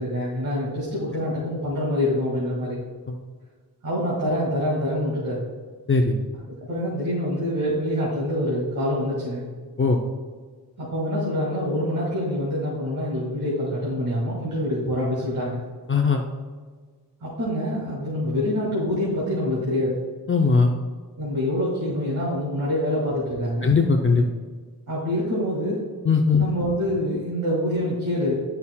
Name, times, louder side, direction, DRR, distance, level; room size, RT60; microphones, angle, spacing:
voice 1, 0.0-2.8 3.8-5.5 6.6-9.6 10.8-15.6 17.2-20.0 21.2-23.7 24.9-25.8 26.4-28.3, left 1 dB, 50° right, -6 dB, 2.0 m, -26 dB
voice 2, 15.9-16.2 20.3-20.7 23.6-24.2 26.0-26.5, left 4 dB, 30° left, 1 dB, 0.5 m, -19 dB
11.5 x 5.5 x 2.2 m, 1.5 s
wide cardioid pair, 155°, 40 cm